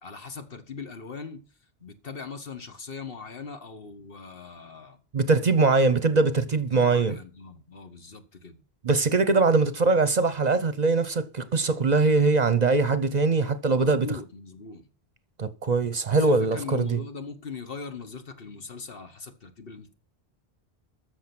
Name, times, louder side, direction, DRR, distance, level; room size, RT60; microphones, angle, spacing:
voice 1, 0.0-1.5 1.8-5.0 6.5-8.6 13.6-14.9 16.1-19.9, left 5 dB, 65° left, 1.5 m, -40 dB
voice 2, 5.1-7.2 8.8-14.1 15.4-17.0, right 3 dB, 45° right, 0.8 m, -22 dB
13.5 x 6.7 x 6.0 m
omnidirectional pair, 1.0 m